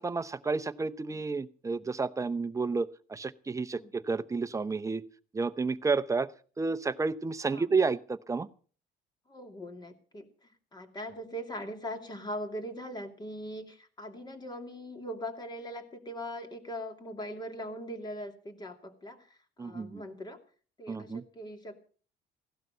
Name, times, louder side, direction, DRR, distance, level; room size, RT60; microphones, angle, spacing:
voice 1, 0.0-5.0 5.3-6.3 6.6-8.5 19.6-20.0 20.9-21.2, right 4 dB, 20° right, 13 dB, 0.8 m, -31 dB
voice 2, 9.3-20.4 20.8-21.8, equal, 25° left, 6 dB, 2.7 m, -41 dB
16.5 x 12.0 x 5.6 m, 0.42 s
cardioid pair, 110°, 17 cm